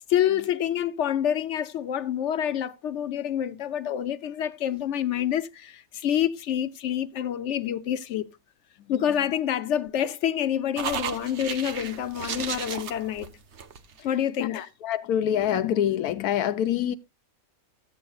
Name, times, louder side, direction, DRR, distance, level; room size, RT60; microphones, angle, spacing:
voice 1, 0.1-8.3 8.9-13.4 14.0-14.6, left 10 dB, 60° left, 0.9 m, -27 dB
sound 1, 10.8-14.1, right 7 dB, 55° right, 1.1 m, -34 dB
voice 2, 14.4-16.9, left 10 dB, 85° left, 1.2 m, -26 dB
14.5 x 8.4 x 2.3 m
omnidirectional pair, 1.6 m